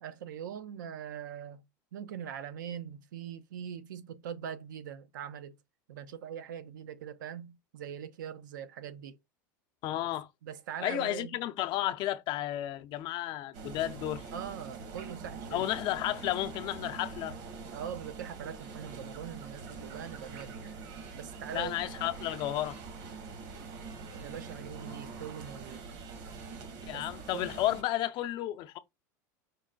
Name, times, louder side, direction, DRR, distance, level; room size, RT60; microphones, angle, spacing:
voice 1, 0.0-1.6 1.9-5.5 5.9-9.2 10.4-11.4 14.3-15.7 17.7-20.7 21.1-21.7 24.1-25.8 26.9-27.0 27.3-27.5, right 9 dB, 85° right, 0.6 m, -42 dB
voice 2, 9.8-10.3 10.8-14.2 15.5-17.3 21.5-22.8 26.9-28.8, left 14 dB, 50° left, 0.5 m, -32 dB
sound 1, 13.5-27.8, right 4 dB, 65° right, 1.3 m, -44 dB
5.2 x 2.2 x 3.8 m
hypercardioid pair, 105°, 10 cm